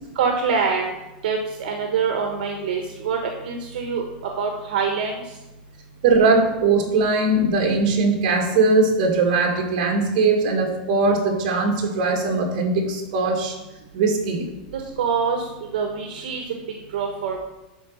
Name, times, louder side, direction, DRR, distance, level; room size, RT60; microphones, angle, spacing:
voice 1, 0.1-0.9 1.2-3.2 3.4-4.1 4.4-5.2 14.7-15.5 15.7-16.4 16.9-17.4, right 5 dB, 75° right, 3 dB, 1.3 m, -24 dB
voice 2, 6.0-13.6 13.9-14.5, right 3 dB, 50° right, 1 dB, 2.1 m, -20 dB
11.5 x 4.2 x 5.7 m, 0.99 s
supercardioid pair, 170°, 5 cm